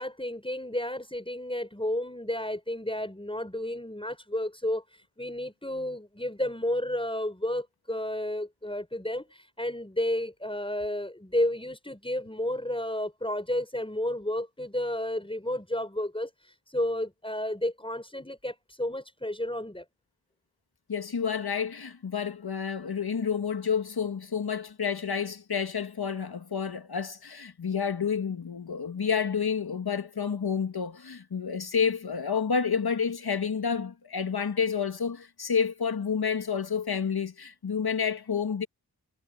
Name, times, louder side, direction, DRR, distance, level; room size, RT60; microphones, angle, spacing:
voice 1, 0.0-19.8, left 1 dB, 15° left, 5.8 m, -32 dB
voice 2, 20.9-38.7, left 6 dB, 70° left, 2.0 m, -29 dB
cardioid pair, 45°, 39 cm